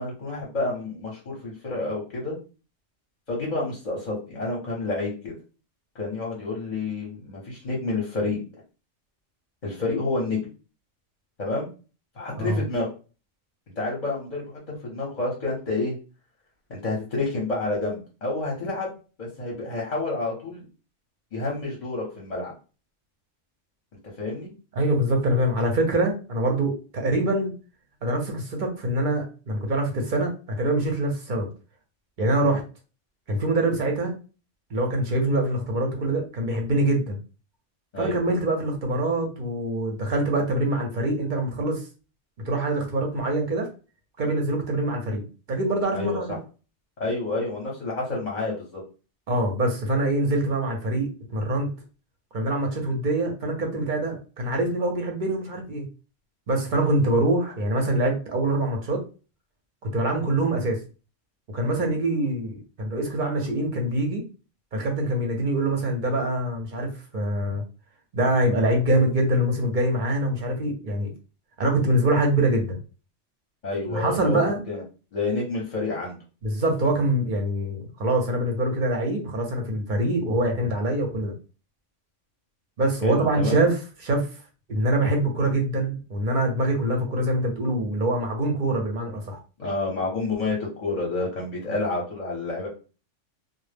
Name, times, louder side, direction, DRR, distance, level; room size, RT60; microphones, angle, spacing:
voice 1, 0.0-2.4 3.3-5.3 5.9-8.4 9.6-10.4 11.4-11.7 12.2-12.9 13.8-16.0 16.7-18.9 19.2-20.6 21.3-22.5 24.2-24.5 37.9-38.2 45.9-46.4 47.0-48.8 73.6-74.4 74.7-74.8 75.1-76.2 83.0-83.6 89.6-92.7, left 3 dB, 45° left, -3 dB, 0.7 m, -29 dB
voice 2, 24.8-27.5 28.0-31.5 32.2-32.6 33.3-34.1 34.7-37.2 38.0-41.8 42.4-43.7 44.2-45.2 45.5-46.4 49.3-51.7 52.3-55.8 56.5-59.0 59.8-60.8 61.5-64.2 64.7-67.6 68.1-71.1 71.6-72.8 73.9-74.6 76.4-81.3 82.8-84.3 84.7-89.4, right 1 dB, 50° right, 2 dB, 0.6 m, -24 dB
2.0 x 2.0 x 3.2 m, 0.34 s
omnidirectional pair, 1.3 m